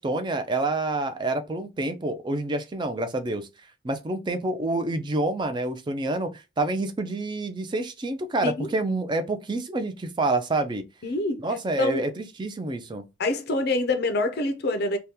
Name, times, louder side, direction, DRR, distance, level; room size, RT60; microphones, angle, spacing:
voice 1, 0.0-3.5 3.8-10.8 11.4-13.0, right 2 dB, 25° right, 0.4 m, -28 dB
voice 2, 11.0-11.4 11.8-12.1 13.2-15.0, left 2 dB, 60° left, 0.5 m, -25 dB
2.8 x 2.2 x 3.5 m
head